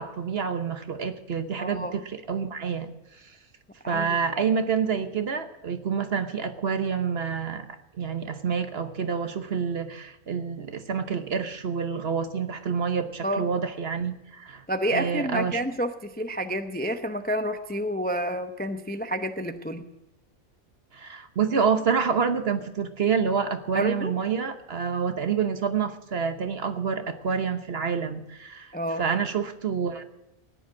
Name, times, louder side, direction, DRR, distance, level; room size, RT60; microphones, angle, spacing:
voice 1, 0.0-3.3 3.9-14.6 14.9-15.6 20.9-30.0, right 6 dB, 50° right, 8 dB, 1.1 m, -28 dB
voice 2, 1.6-2.0 3.8-4.4 13.2-13.5 14.7-19.8 23.7-24.1 28.7-29.0, equal, 10° left, 7 dB, 0.5 m, -29 dB
15.0 x 10.0 x 7.2 m, 0.91 s
omnidirectional pair, 1.4 m